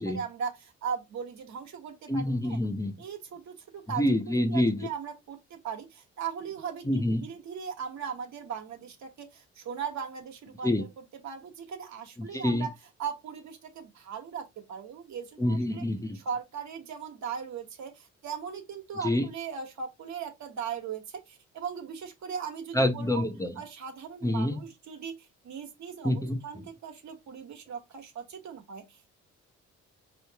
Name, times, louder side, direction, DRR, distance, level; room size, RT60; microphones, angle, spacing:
voice 1, 0.0-2.6 3.0-15.8 16.1-23.2 23.6-29.2, right 7 dB, 65° right, 1.3 m, -39 dB
voice 2, 2.1-2.9 4.0-4.9 6.9-7.2 10.6-10.9 12.2-12.7 15.4-16.2 19.0-19.3 22.7-23.5 24.2-24.6 26.0-26.4, left 1 dB, 10° left, 0.7 m, -27 dB
4.5 x 3.1 x 2.9 m
cardioid pair, 90°, 30 cm